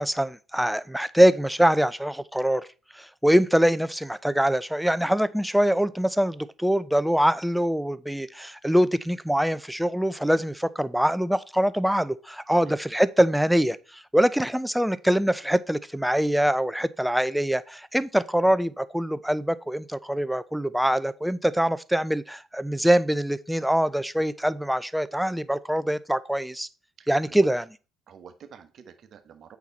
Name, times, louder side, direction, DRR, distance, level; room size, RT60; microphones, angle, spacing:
voice 1, 0.0-2.6 2.9-26.7 27.1-27.6, equal, 5° right, 0.7 m, -24 dB
voice 2, 27.0-27.5 28.1-29.6, right 7 dB, 55° right, 1.4 m, -48 dB
8.3 x 5.9 x 4.2 m
supercardioid pair, 65°, 0 cm